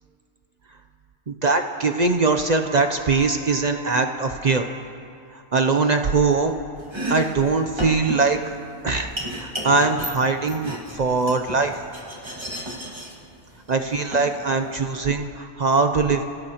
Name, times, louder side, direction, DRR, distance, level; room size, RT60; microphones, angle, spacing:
voice 1, 1.3-4.6 5.5-6.5 7.1-8.4 8.8-9.1 9.4-11.7 13.7-16.2, right 4 dB, 45° right, 6 dB, 0.6 m, -21 dB
Trumpet, 2.6-4.9, right 2 dB, 5° right, 1.8 m, -42 dB
Domestic sounds home sounds, 6.8-15.0, equal, 25° right, 1.8 m, -34 dB
28.5 x 16.5 x 2.9 m, 2.5 s
omnidirectional pair, 1.2 m